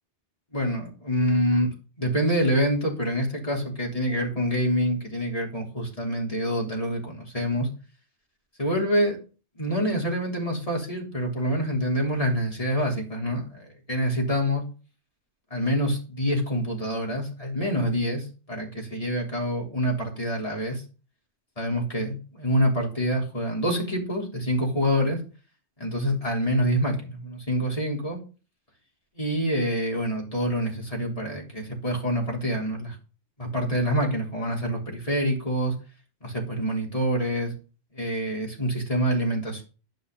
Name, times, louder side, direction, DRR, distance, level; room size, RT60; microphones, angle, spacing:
voice 1, 0.5-1.7 2.0-7.7 8.6-9.2 9.6-14.6 15.5-20.8 21.6-25.2 25.8-28.2 29.2-33.0 33.4-35.7 36.2-37.5 37.9-39.6, equal, 30° left, -1 dB, 3.8 m, -26 dB
12.5 x 5.5 x 5.4 m, 0.34 s
omnidirectional pair, 1.1 m